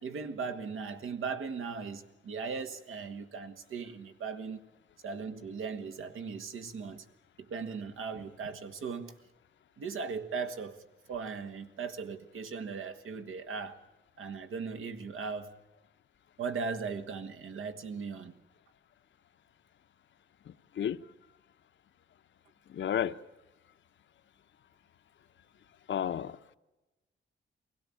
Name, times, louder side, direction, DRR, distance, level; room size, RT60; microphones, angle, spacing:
voice 1, 0.0-4.6 5.0-7.0 7.4-9.1 9.8-13.8 14.2-15.6 16.4-18.4, right 5 dB, 85° right, 1.6 m, -38 dB
voice 2, 20.4-21.0 22.7-23.2 25.9-26.4, left 9 dB, 65° left, 0.8 m, -32 dB
23.0 x 17.0 x 8.6 m
wide cardioid pair, 135°, 20 cm